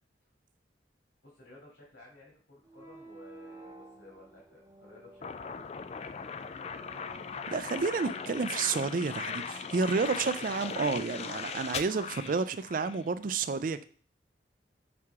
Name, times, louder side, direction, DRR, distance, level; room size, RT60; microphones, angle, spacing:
voice 1, 1.2-5.5, left 2 dB, 90° left, 2.5 m, -55 dB
sound 1, 2.6-9.6, right 2 dB, 15° right, 0.9 m, -53 dB
sound 2, 5.2-13.0, left 6 dB, 35° left, 0.3 m, -39 dB
voice 2, 7.5-13.8, right 4 dB, 50° right, 0.4 m, -30 dB
6.0 x 4.7 x 3.5 m
head